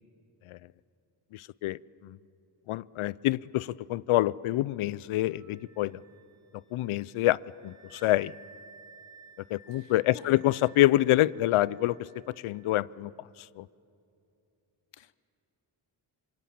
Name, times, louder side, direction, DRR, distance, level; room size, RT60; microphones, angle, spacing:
voice 1, 1.3-2.2 2.7-6.0 6.7-8.3 9.5-12.1 12.4-13.1 13.6-13.7, left 16 dB, 80° left, 22 dB, 0.6 m, -27 dB
Wind instrument woodwind instrument, 5.3-12.7, right 5 dB, 70° right, 2.2 m, -56 dB
voice 2, 9.7-10.4 14.9-15.2, left 10 dB, 60° left, 17 dB, 0.9 m, -51 dB
25.5 x 22.0 x 8.6 m, 2.7 s
cardioid pair, 55°, 49 cm